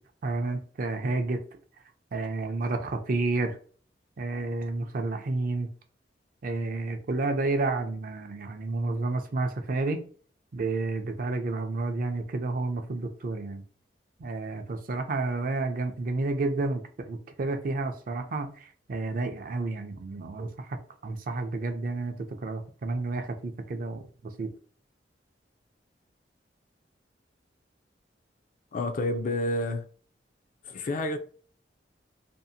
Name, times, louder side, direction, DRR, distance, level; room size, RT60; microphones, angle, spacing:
voice 1, 0.2-1.4 2.1-3.6 4.2-5.7 6.4-10.0 10.5-13.6 14.2-20.8 21.0-22.2 22.4-24.5, right 3 dB, 50° right, 0.4 m, -30 dB
voice 2, 28.7-29.8 30.7-31.2, left 2 dB, 45° left, 0.3 m, -29 dB
2.6 x 2.4 x 2.6 m
head